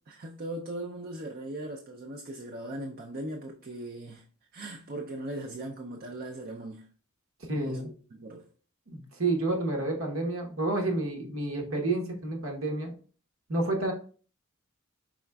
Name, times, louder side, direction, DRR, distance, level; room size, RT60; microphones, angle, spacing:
voice 1, 0.1-4.2 4.5-6.9 7.5-7.8 8.1-8.4, right 1 dB, 45° right, 0.5 m, -39 dB
voice 2, 7.5-7.9 8.9-12.9 13.5-13.9, right 2 dB, 75° right, 1.1 m, -30 dB
4.9 x 4.2 x 2.3 m
head